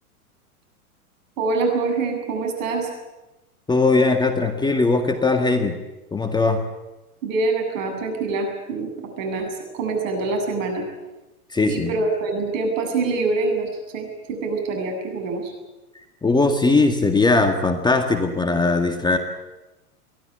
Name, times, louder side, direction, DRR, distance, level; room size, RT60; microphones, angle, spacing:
voice 1, 1.4-2.9 7.2-10.8 11.6-15.5, right 3 dB, 60° right, 4 dB, 7.9 m, -25 dB
voice 2, 3.7-5.8 6.1-6.6 11.5-11.9 16.2-19.2, left 3 dB, 10° left, 6 dB, 1.8 m, -19 dB
23.5 x 17.5 x 9.8 m, 1.1 s
hypercardioid pair, 115°, 45 cm